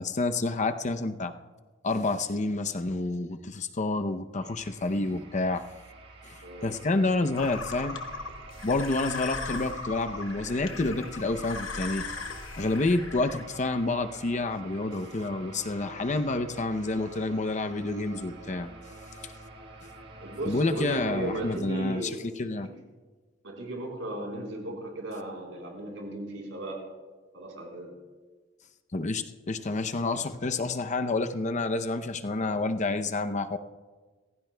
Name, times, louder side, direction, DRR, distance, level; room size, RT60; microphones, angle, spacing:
voice 1, 0.0-1.3 1.8-5.6 6.6-8.0 8.6-12.1 12.6-18.7 20.5-22.7 28.9-33.6, left 2 dB, 40° left, 8 dB, 0.7 m, -29 dB
sound 1, 4.4-21.6, right 2 dB, 60° right, 1.5 m, -47 dB
voice 2, 6.4-6.7 20.2-22.2 22.5-22.7 23.4-26.8 27.3-27.9, right 1 dB, 80° right, -1 dB, 4.0 m, -36 dB
sound 2, 7.3-13.4, left 4 dB, 70° left, 1.1 m, -38 dB
26.5 x 15.0 x 2.3 m, 1.3 s
head